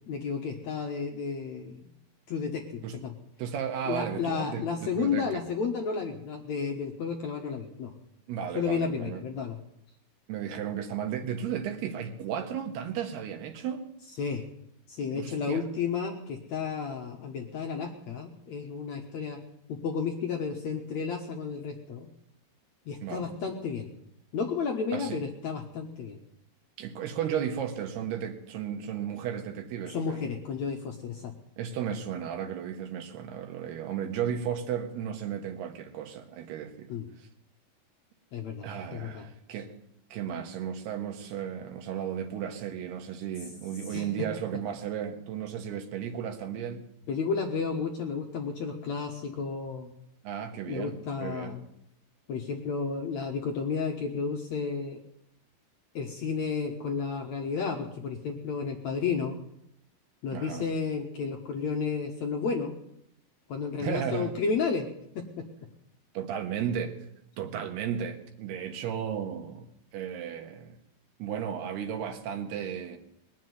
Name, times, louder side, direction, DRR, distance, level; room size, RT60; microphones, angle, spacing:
voice 1, 0.1-1.8 2.3-3.1 3.9-7.9 8.5-9.6 14.2-14.4 14.9-19.4 19.7-22.1 22.9-23.9 24.3-26.2 29.9-31.3 36.9-37.1 38.3-39.3 43.9-44.1 47.1-49.9 50.7-51.6 52.3-55.0 55.9-59.4 60.2-62.7 63.5-64.9 65.2-65.4, left 5 dB, 60° left, 2 dB, 1.9 m, -32 dB
voice 2, 3.4-5.4 8.3-9.2 10.3-13.9 15.1-15.7 23.0-23.3 24.9-25.2 26.8-30.2 31.6-37.3 38.6-39.7 40.1-46.9 50.2-51.6 60.3-60.7 63.8-64.3 66.2-67.0 67.4-70.8 71.2-73.0, right 8 dB, 80° right, 5 dB, 3.4 m, -34 dB
20.5 x 7.4 x 9.5 m, 0.76 s
omnidirectional pair, 4.6 m